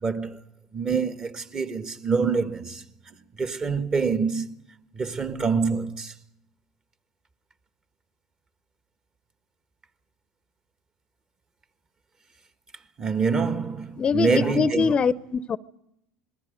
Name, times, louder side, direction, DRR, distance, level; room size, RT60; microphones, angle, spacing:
voice 1, 0.0-0.4 0.7-4.6 4.9-6.1 13.0-14.9, right 5 dB, 30° right, 1.4 m, -26 dB
voice 2, 14.0-15.6, left 5 dB, 30° left, 0.7 m, -23 dB
26.5 x 21.5 x 5.2 m
hypercardioid pair, 85°, 3 cm